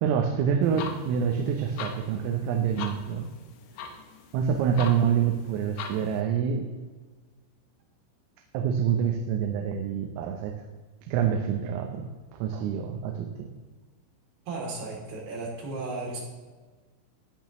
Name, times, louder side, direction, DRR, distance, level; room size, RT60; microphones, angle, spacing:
voice 1, 0.0-3.3 4.3-6.7 8.5-10.6 11.0-13.5, right 7 dB, 90° right, 3 dB, 3.5 m, -27 dB
sound 1, 0.6-6.2, left 6 dB, 75° left, 3.3 m, -42 dB
voice 2, 0.6-0.9 14.5-16.2, right 3 dB, 50° right, -3 dB, 4.4 m, -35 dB
16.5 x 10.5 x 3.1 m, 1.4 s
omnidirectional pair, 5.8 m